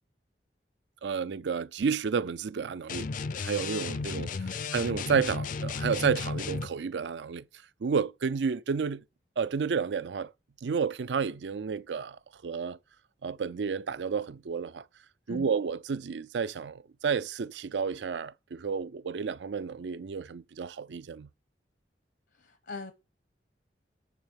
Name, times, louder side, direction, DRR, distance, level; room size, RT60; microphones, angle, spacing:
voice 1, 1.0-3.1 3.4-4.3 4.7-7.4 7.8-9.0 9.4-10.3 10.6-12.8 13.2-14.8 15.3-21.3, right 6 dB, 85° right, 0.5 m, -31 dB
sound 1, 2.9-6.7, left 4 dB, 50° left, 0.4 m, -34 dB
voice 2, 22.3-22.9, left 3 dB, 75° left, 0.9 m, -42 dB
9.8 x 3.5 x 6.3 m
head